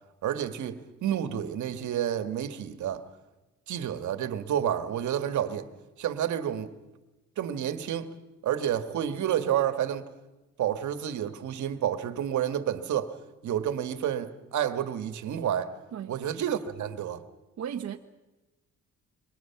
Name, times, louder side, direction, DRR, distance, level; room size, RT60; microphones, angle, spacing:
voice 1, 0.2-3.0 3.7-5.7 6.0-6.7 7.4-8.1 8.4-10.1 10.6-13.2 13.4-15.7 16.1-17.2, right 10 dB, 70° right, 1.7 m, -30 dB
voice 2, 17.6-18.0, right 9 dB, 55° right, 1.1 m, -35 dB
27.0 x 24.0 x 5.9 m
cardioid pair, 90°, 30 cm